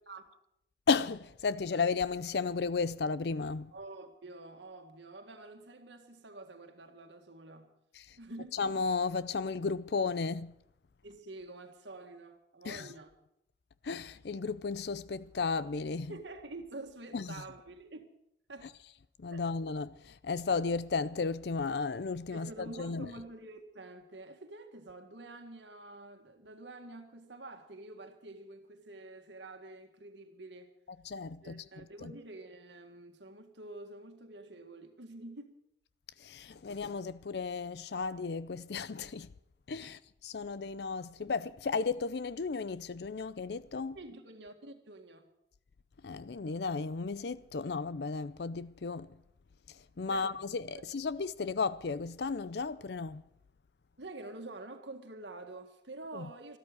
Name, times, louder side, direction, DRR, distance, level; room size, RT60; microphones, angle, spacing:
voice 1, 0.9-3.7 7.9-8.2 8.5-10.6 12.6-12.9 13.8-16.1 17.1-17.4 19.2-23.1 31.0-32.1 36.2-39.3 39.7-44.0 46.0-49.2 49.7-53.2 56.1-56.3, left 4 dB, 65° left, 0.5 m, -34 dB
voice 2, 3.7-7.7 8.2-8.6 11.0-13.1 16.1-18.1 18.5-18.7 19.3-19.5 22.3-30.7 31.4-35.6 39.8-39.9 43.9-45.3 50.1-50.3 50.7-50.8 54.0-56.6, right 2 dB, 85° right, 1.9 m, -48 dB
13.5 x 13.5 x 7.9 m
head